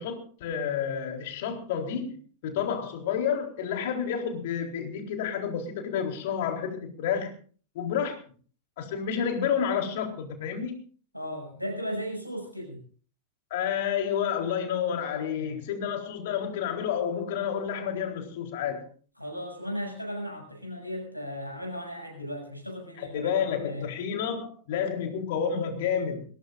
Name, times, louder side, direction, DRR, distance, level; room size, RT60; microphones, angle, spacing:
voice 1, 0.0-2.2 2.4-7.3 7.7-8.2 8.8-10.8 13.5-18.9 23.0-26.3, left 7 dB, 55° left, 4 dB, 3.9 m, -30 dB
voice 2, 11.1-12.8 15.4-15.6 19.2-23.9, equal, 90° right, 2 dB, 7.1 m, -36 dB
22.0 x 18.0 x 2.6 m, 0.42 s
figure-of-eight pair, 90°, 0 cm